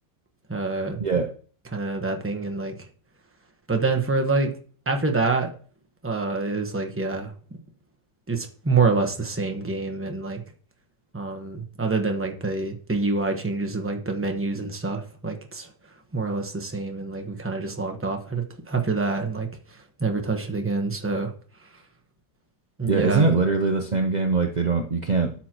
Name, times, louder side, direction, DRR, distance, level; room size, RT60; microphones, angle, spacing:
voice 1, 0.5-1.0 1.7-2.7 3.7-4.5 4.9-5.5 6.0-7.3 8.3-10.4 11.1-15.7 16.1-21.3 22.8-23.2, right 3 dB, 10° right, 4 dB, 0.7 m, -26 dB
voice 2, 1.0-1.3 22.8-25.3, right 4 dB, 50° right, 3 dB, 0.5 m, -22 dB
12.0 x 7.3 x 3.0 m, 0.43 s
omnidirectional pair, 1.9 m